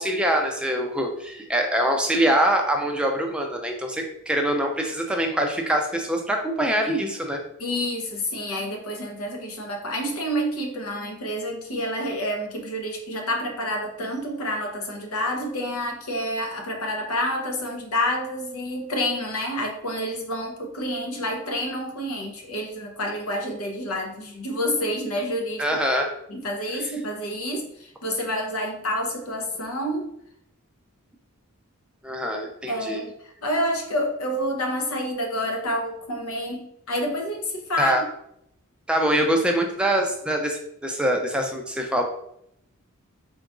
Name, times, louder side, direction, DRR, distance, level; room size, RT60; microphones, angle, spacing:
voice 1, 0.0-7.4 25.6-26.1 32.0-33.0 37.8-38.0 38.9-42.0, right 1 dB, 5° right, 2 dB, 0.4 m, -24 dB
voice 2, 7.6-25.7 26.3-30.1 32.7-33.1 33.4-38.0, equal, 75° left, 3 dB, 0.8 m, -28 dB
3.8 x 2.3 x 3.6 m, 0.74 s
head